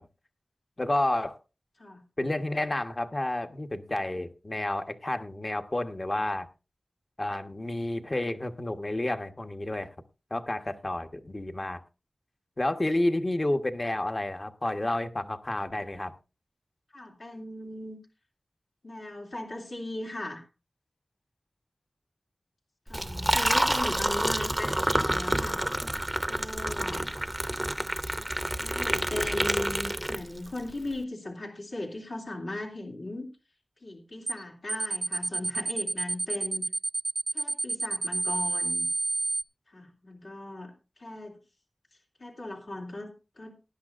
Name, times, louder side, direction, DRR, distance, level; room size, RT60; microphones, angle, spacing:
voice 1, 0.8-1.4 2.2-6.5 7.2-9.9 10.3-11.8 12.6-16.1, left 1 dB, 40° left, 1.2 m, -30 dB
voice 2, 16.9-18.0 18.8-20.5 22.9-25.6 26.3-27.1 28.6-33.3 33.8-36.6 37.3-38.9 39.7-41.4 42.2-43.5, left 1 dB, 70° left, 2.9 m, -38 dB
Liquid, 22.9-30.6, right 1 dB, 15° right, 0.7 m, -28 dB
sound 1, 34.3-34.4 34.7-39.4, right 3 dB, 70° right, 0.6 m, -29 dB
19.0 x 11.0 x 2.5 m
wide cardioid pair, 55°, 0 cm